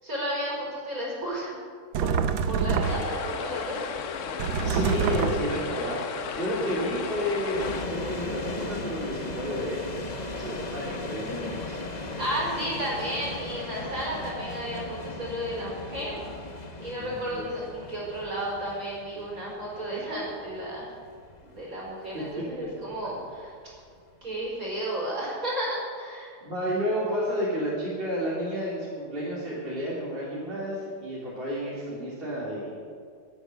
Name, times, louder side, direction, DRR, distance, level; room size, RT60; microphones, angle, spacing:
voice 1, 0.0-1.6 2.0-2.2 2.4-3.9 12.2-16.2 16.8-20.9 21.5-23.5 24.2-26.4, right 1 dB, 45° right, -4 dB, 5.4 m, -33 dB
sound 1, 2.0-3.3 4.4-5.7, right 6 dB, 85° right, 1.5 m, -26 dB
sound 2, 2.8-7.8, left 6 dB, 55° left, 0.9 m, -34 dB
voice 2, 4.6-6.0 6.4-9.8 10.3-11.8 16.1-16.3 16.9-17.5 22.1-22.2 22.6-22.7 26.4-32.7, equal, 30° right, -8 dB, 3.2 m, -31 dB
sound 3, 7.5-24.5, left 2 dB, 30° left, 0.9 m, -38 dB
12.0 x 9.8 x 9.4 m, 2.1 s
omnidirectional pair, 2.1 m